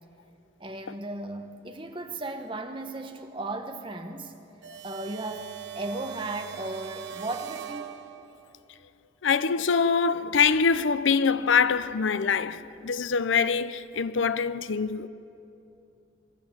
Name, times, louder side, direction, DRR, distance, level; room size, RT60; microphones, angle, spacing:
voice 1, 0.6-4.4 4.8-7.9, right 2 dB, 25° right, 1.1 m, -36 dB
sound 1, 4.6-8.5, right 11 dB, 65° right, 0.8 m, -41 dB
voice 2, 9.2-15.1, left 5 dB, 85° left, 0.6 m, -24 dB
23.5 x 12.5 x 8.9 m
head